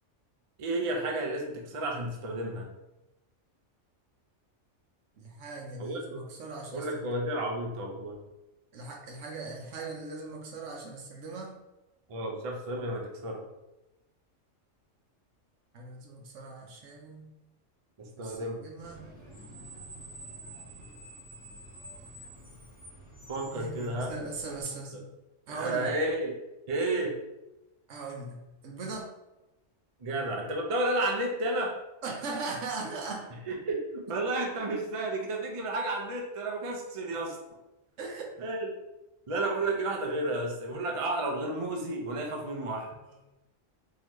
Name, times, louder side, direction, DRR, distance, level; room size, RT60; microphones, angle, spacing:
voice 1, 0.6-2.7 5.8-6.2 6.7-8.1 12.1-13.4 18.0-18.6 23.3-24.1 25.5-26.3 26.7-27.1 30.0-31.7 33.5-37.4 38.4-38.6 39.3-42.9, right 2 dB, 40° right, 0 dB, 0.5 m, -32 dB
voice 2, 5.2-7.1 8.7-11.6 15.7-17.3 18.2-19.1 23.5-25.1 25.5-26.0 27.9-29.1 32.0-33.3 38.0-38.3 42.1-42.2 43.0-43.2, right 3 dB, 75° right, 1 dB, 1.1 m, -39 dB
Screech, 18.8-24.6, right 1 dB, 10° right, 0.9 m, -48 dB
3.9 x 2.8 x 3.0 m, 0.96 s
omnidirectional pair, 1.3 m